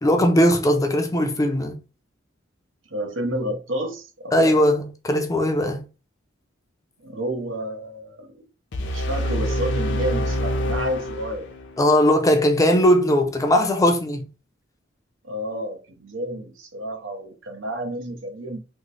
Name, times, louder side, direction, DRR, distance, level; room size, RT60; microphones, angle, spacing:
voice 1, 0.0-1.8 4.3-5.9 11.8-14.3, equal, 15° left, 0.5 m, -19 dB
voice 2, 2.9-4.5 7.0-8.4 8.9-11.5 15.2-18.6, right 1 dB, 75° right, 0.8 m, -30 dB
sound 1, 8.7-11.8, equal, 65° left, 0.6 m, -26 dB
3.0 x 2.1 x 3.9 m
head